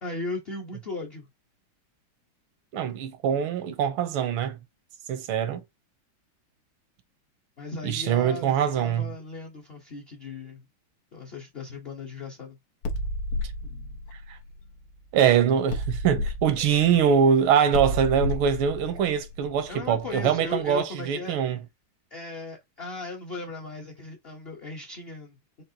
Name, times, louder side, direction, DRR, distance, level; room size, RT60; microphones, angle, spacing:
voice 1, 0.0-1.3 7.6-10.7 11.1-12.6 19.7-21.4 22.1-25.6, left 3 dB, 55° left, 0.6 m, -37 dB
voice 2, 2.7-4.5 5.1-5.6 7.8-9.1 15.1-21.6, right 8 dB, 80° right, 1.5 m, -23 dB
sound 1, 12.8-15.2 15.7-20.4, left 1 dB, 85° left, 1.7 m, -32 dB
5.2 x 2.5 x 2.7 m
omnidirectional pair, 2.3 m